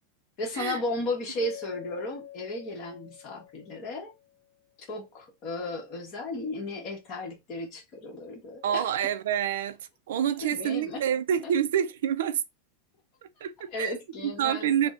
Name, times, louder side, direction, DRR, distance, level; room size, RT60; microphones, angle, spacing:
voice 1, 0.4-4.1 4.9-8.8 10.5-11.0 13.7-14.9, left 2 dB, 35° left, 1.3 m, -35 dB
Mallet percussion, 1.4-4.4, left 13 dB, 5° left, 1.2 m, -46 dB
voice 2, 8.6-9.8 10.1-12.4 13.4-13.9 14.2-14.9, right 9 dB, 85° right, 0.4 m, -27 dB
3.5 x 2.2 x 3.7 m
supercardioid pair, 170°, 0 cm